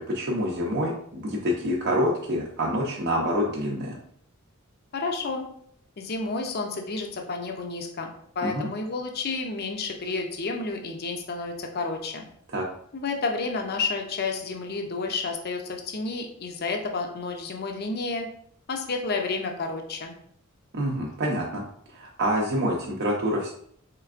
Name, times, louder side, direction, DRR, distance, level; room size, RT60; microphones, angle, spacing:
voice 1, 0.0-4.0 8.4-8.7 12.5-12.6 20.7-21.6 21.9-23.5, equal, 50° right, -3 dB, 0.5 m, -27 dB
voice 2, 4.9-5.5 6.0-12.3 12.9-18.3 18.7-20.1, left 3 dB, 45° left, 4 dB, 0.5 m, -30 dB
4.4 x 3.3 x 2.4 m, 0.65 s
head